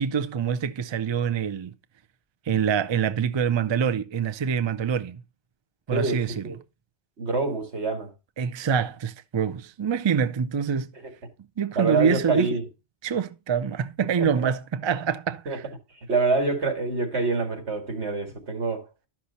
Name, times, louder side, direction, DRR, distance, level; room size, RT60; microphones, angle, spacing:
voice 1, 0.0-1.7 2.5-5.2 5.9-6.5 8.4-10.9 11.6-12.6 13.0-15.6, right 7 dB, 35° right, 0.4 m, -25 dB
voice 2, 5.9-6.6 7.2-8.1 11.8-12.6 14.2-14.5 15.5-15.6 16.1-18.8, right 3 dB, 85° right, 2.4 m, -26 dB
12.0 x 6.0 x 4.1 m
omnidirectional pair, 1.1 m